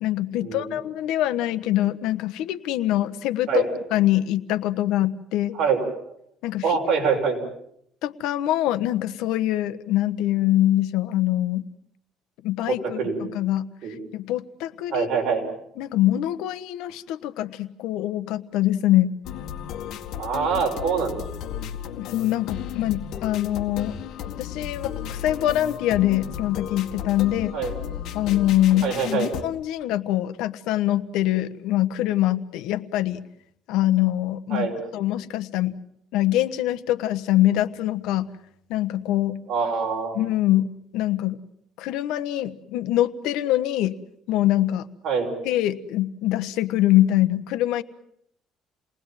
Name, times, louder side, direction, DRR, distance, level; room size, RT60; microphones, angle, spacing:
voice 1, 0.0-3.7 3.9-5.6 6.4-6.6 8.0-11.7 12.4-13.7 14.1-15.1 15.8-19.1 22.0-23.9 24.4-27.6 28.1-33.2 33.7-34.7 34.9-35.8 36.1-38.3 38.7-39.4 40.1-41.4 41.8-44.0 44.3-44.9 45.4-47.8, left 14 dB, 85° left, 13 dB, 1.3 m, -24 dB
voice 2, 6.6-7.4 12.7-13.2 13.8-14.0 14.9-15.4 20.2-21.2 27.5-27.7 28.8-29.3 34.5-34.8 39.5-40.2 45.0-45.3, right 5 dB, 55° right, 2 dB, 6.5 m, -24 dB
sound 1, 19.2-29.4, left 9 dB, 70° left, 2.1 m, -34 dB
29.0 x 20.0 x 7.5 m, 0.72 s
cardioid pair, 135°, 0 cm